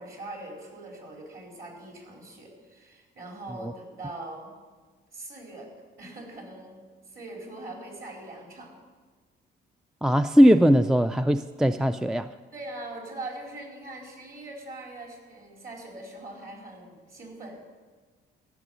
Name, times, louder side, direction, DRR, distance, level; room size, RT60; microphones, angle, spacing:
voice 1, 0.0-4.5 5.1-5.7 6.0-8.7 12.5-17.7, right 2 dB, 45° right, 4.5 m, -42 dB
voice 2, 10.0-12.3, equal, 5° right, 0.4 m, -20 dB
15.0 x 6.8 x 9.1 m
cardioid pair, 90°, 20 cm